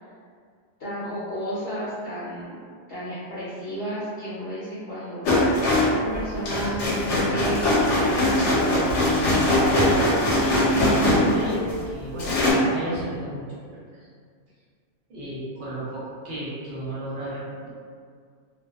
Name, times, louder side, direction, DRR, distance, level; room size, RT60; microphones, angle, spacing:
voice 1, 0.8-2.6 2.9-5.3 5.8-7.6 7.9-8.9, equal, 60° left, -11 dB, 0.8 m, -33 dB
sound 1, 5.2-11.8 12.2-12.5, left 1 dB, 85° left, 1.0 m, -21 dB
voice 2, 11.1-13.8 15.1-17.7, right 1 dB, 55° right, -9 dB, 0.8 m, -34 dB
2.5 x 2.1 x 2.3 m, 2.1 s
omnidirectional pair, 1.2 m